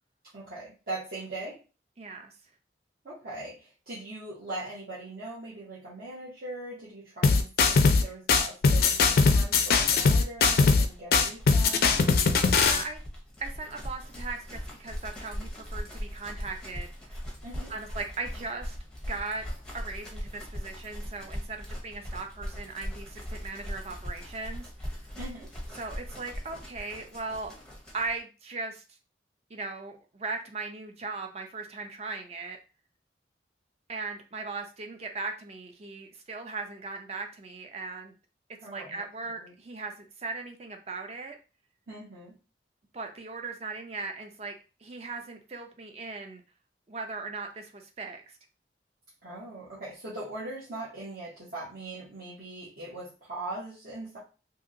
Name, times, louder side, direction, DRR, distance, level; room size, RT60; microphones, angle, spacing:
voice 1, 0.3-1.6 3.0-12.1 17.4-17.7 25.2-25.5 38.6-39.0 39.3-39.5 41.9-42.3 49.2-54.2, right 2 dB, 55° right, -9 dB, 1.0 m, -41 dB
voice 2, 2.0-2.3 11.2-11.3 12.5-13.0 13.4-17.1 17.7-18.8 19.1-19.5 19.7-24.7 25.8-27.5 27.9-28.8 29.5-32.6 33.9-38.1 38.7-41.4 42.9-44.5 44.8-46.4 46.9-48.4, right 3 dB, 35° right, 4 dB, 0.5 m, -38 dB
sound 1, 7.2-8.0 8.3-10.8 11.1-12.8, left 4 dB, 55° left, 0.4 m, -21 dB
sound 2, 10.4-28.2, equal, 5° left, 0.6 m, -40 dB
2.8 x 2.7 x 2.5 m, 0.33 s
head